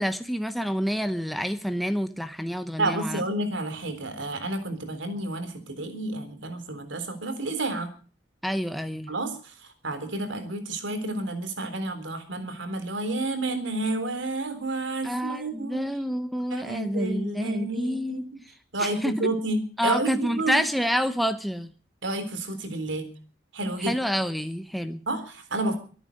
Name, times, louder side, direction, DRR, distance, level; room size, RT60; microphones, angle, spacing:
voice 1, 0.0-3.2 8.4-9.1 15.0-18.2 18.8-19.3 19.8-21.7 23.8-25.0, equal, ahead, 8 dB, 0.8 m, -28 dB
voice 2, 2.8-7.9 9.1-9.5 9.8-15.9 16.5-18.3 18.7-20.6 22.0-23.1 23.5-24.0 25.1-25.8, right 2 dB, 90° right, 8 dB, 3.8 m, -30 dB
24.0 x 9.1 x 6.5 m, 0.41 s
head